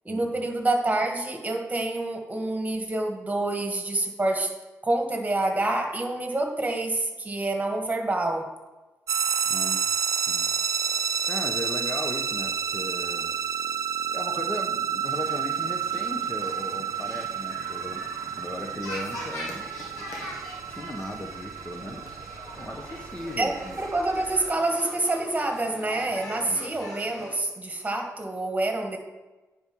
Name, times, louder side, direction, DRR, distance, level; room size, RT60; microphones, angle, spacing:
voice 1, 0.0-4.5 4.8-8.5 23.4-29.0, right 2 dB, 25° right, 3 dB, 1.7 m, -27 dB
sound 1, 9.1-24.5, right 7 dB, 60° right, 0.5 m, -30 dB
voice 2, 9.5-10.6 11.3-13.4 14.1-18.1 18.4-19.7 20.0-20.1 20.7-22.2 22.6-23.8 26.4-26.7, left 1 dB, 20° left, 3 dB, 1.1 m, -37 dB
sound 2, 15.0-27.3, left 1 dB, 90° left, 1.8 m, -42 dB
9.6 x 4.8 x 5.5 m, 1.2 s
cardioid pair, 65°, 6 cm